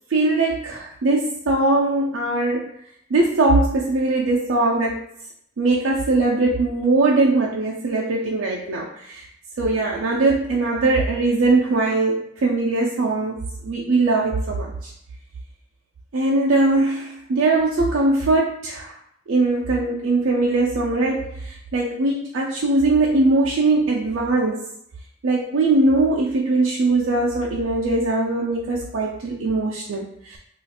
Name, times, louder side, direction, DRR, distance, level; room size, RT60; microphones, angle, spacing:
voice 1, 0.1-2.7 3.1-5.0 5.6-9.3 9.6-14.9 16.1-18.9 19.3-24.6 25.2-30.4, right 2 dB, 80° right, -3 dB, 0.5 m, -21 dB
2.4 x 2.4 x 4.1 m, 0.72 s
head